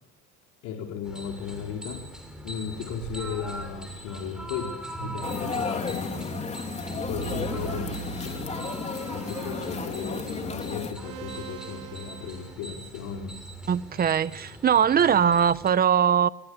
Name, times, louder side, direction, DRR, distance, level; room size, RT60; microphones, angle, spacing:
voice 1, 0.6-2.1 2.4-6.4 7.0-13.4, left 7 dB, 70° left, 4.8 m, -36 dB
sound 1, 1.0-15.7, right 1 dB, ahead, 6.7 m, -41 dB
sound 2, 5.0-6.4 7.0-12.5, right 11 dB, 85° right, 4.7 m, -42 dB
sound 3, 5.2-10.9, left 5 dB, 25° left, 3.6 m, -33 dB
voice 2, 13.7-16.3, right 8 dB, 30° right, 1.2 m, -21 dB
29.5 x 24.5 x 8.3 m
supercardioid pair, 120°, 29 cm